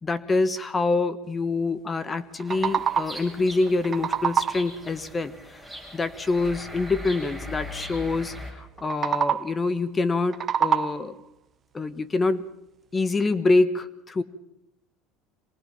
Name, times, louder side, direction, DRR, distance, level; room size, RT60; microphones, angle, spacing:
voice 1, 0.0-5.3 5.9-11.2 11.7-12.4 12.9-14.2, left 3 dB, 25° left, 14 dB, 1.5 m, -25 dB
sound 1, 2.2-3.3 3.7-4.8 8.8-9.7 10.1-11.2, right 8 dB, 40° right, 0.7 m, -26 dB
sound 2, 2.5-8.5, equal, 5° left, 7.5 m, -40 dB
24.5 x 19.0 x 5.8 m, 0.83 s
supercardioid pair, 95°, 0 cm